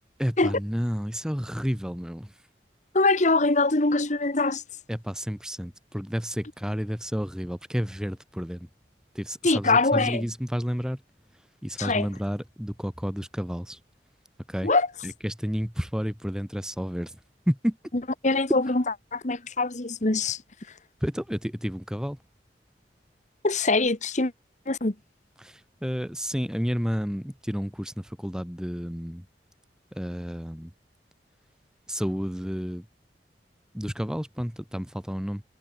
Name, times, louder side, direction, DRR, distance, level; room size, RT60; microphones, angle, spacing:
voice 1, 0.2-2.3 4.9-8.7 9.1-11.0 11.6-13.8 14.5-14.7 15.0-17.2 17.5-17.8 18.5-18.6 21.0-22.2 25.4-29.2 29.9-30.7 31.9-32.8 33.7-35.4, equal, 5° right, 1.6 m, -31 dB
voice 2, 2.9-4.6 9.4-10.2 11.8-12.1 14.6-14.9 18.2-18.6 19.1-20.4 23.4-24.3 24.7-24.9, left 3 dB, 45° left, 1.5 m, -23 dB
head